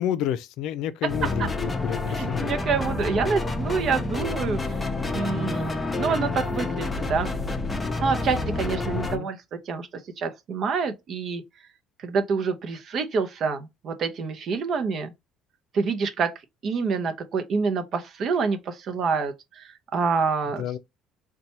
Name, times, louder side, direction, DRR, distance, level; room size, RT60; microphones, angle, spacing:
voice 1, 0.0-2.6 8.8-9.3 20.6-20.8, left 10 dB, 75° left, 0.4 m, -30 dB
sound 1, 1.1-9.2, left 2 dB, 20° left, 0.5 m, -29 dB
voice 2, 2.2-4.6 5.1-7.3 8.0-9.4 9.7-9.9 10.2-11.4 12.0-15.1 15.7-16.3 16.6-20.7, right 5 dB, 50° right, 0.6 m, -27 dB
4.1 x 2.2 x 2.8 m
cardioid pair, 120°, 0 cm